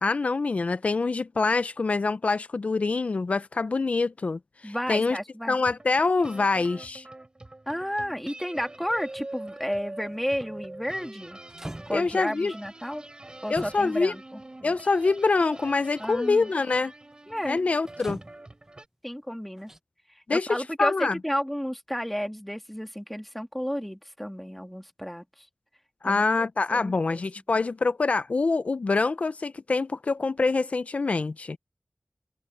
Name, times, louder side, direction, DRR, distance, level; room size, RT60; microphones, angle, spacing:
voice 1, 0.0-5.2 5.5-7.1 11.9-12.5 13.5-14.1 14.6-16.9 17.4-18.2 20.3-21.2 26.0-31.6, left 3 dB, 75° left, 0.4 m, -25 dB
voice 2, 4.6-5.6 7.7-11.4 11.9-13.0 13.4-14.4 16.0-16.5 17.3-17.6 19.0-19.7 20.1-25.5 26.0-26.2 26.7-27.2, equal, 5° left, 2.5 m, -32 dB
sound 1, 5.5-18.8, right 2 dB, 40° right, 5.0 m, -44 dB
sound 2, 10.1-10.3 11.1-11.2 11.5-12.3 13.6-14.1 15.1-15.2 17.9-18.7 19.6-19.8, right 1 dB, 20° right, 0.7 m, -41 dB
open air
wide cardioid pair, 70°, 2 cm